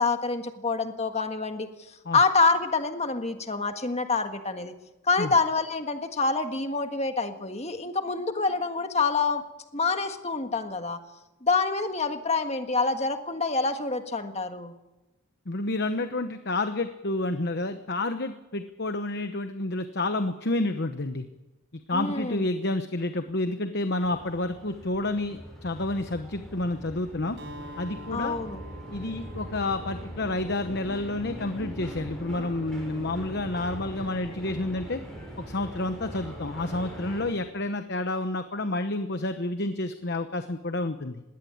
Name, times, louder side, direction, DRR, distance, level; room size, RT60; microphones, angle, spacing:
voice 1, 0.0-1.7 2.1-4.7 5.0-9.4 9.7-11.0 11.4-14.7 21.9-22.4 28.1-28.6, left 4 dB, 30° left, 7 dB, 1.6 m, -26 dB
voice 2, 15.5-21.3 21.9-27.4 27.8-28.4 28.9-35.0 35.4-41.2, left 2 dB, 50° left, 8 dB, 1.0 m, -29 dB
sound 1, 24.0-37.3, right 1 dB, 5° left, 7.2 m, -41 dB
Acoustic guitar, 27.4-31.2, right 1 dB, 50° right, 4.6 m, -46 dB
20.5 x 17.5 x 8.7 m, 1.0 s
head